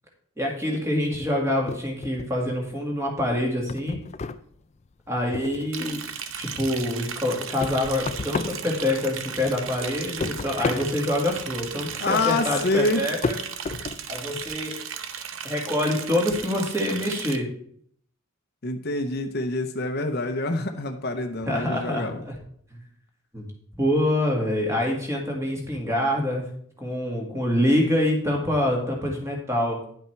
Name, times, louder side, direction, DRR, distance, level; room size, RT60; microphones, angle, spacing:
voice 1, 0.4-4.0 5.1-6.0 6.3-13.4 14.1-14.8 15.4-17.5 21.5-22.4 22.7-22.8 23.3-23.4 23.8-26.4 26.8-29.8, left 1 dB, 15° right, 0 dB, 2.0 m, -26 dB
sound 1, 1.7-2.7 3.1-6.0 6.3-9.4 9.7-14.6, left 3 dB, 35° left, 0.4 m, -33 dB
Liquid, 5.7-17.4, right 8 dB, 75° right, 0.8 m, -36 dB
voice 2, 12.0-13.1 18.6-22.2, left 2 dB, 50° left, 7 dB, 0.8 m, -26 dB
10.0 x 5.7 x 4.5 m, 0.64 s
head